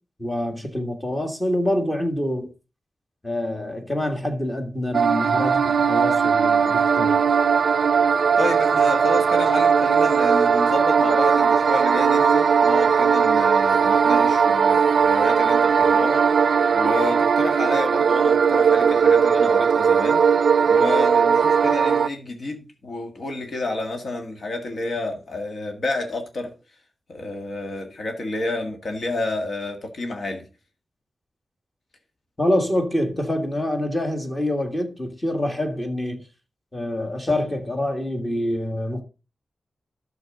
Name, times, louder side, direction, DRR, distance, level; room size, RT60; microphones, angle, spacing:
voice 1, 0.2-2.5 3.2-7.2 32.4-36.2 36.7-39.0, left 1 dB, 15° left, 1.7 m, -26 dB
sound 1, 4.9-22.1, right 6 dB, 80° right, 0.4 m, -18 dB
voice 2, 8.4-16.3 16.7-20.2 20.7-26.5 27.1-30.5, left 2 dB, 65° left, 1.7 m, -29 dB
12.5 x 6.4 x 3.8 m
wide cardioid pair, 160°, 0 cm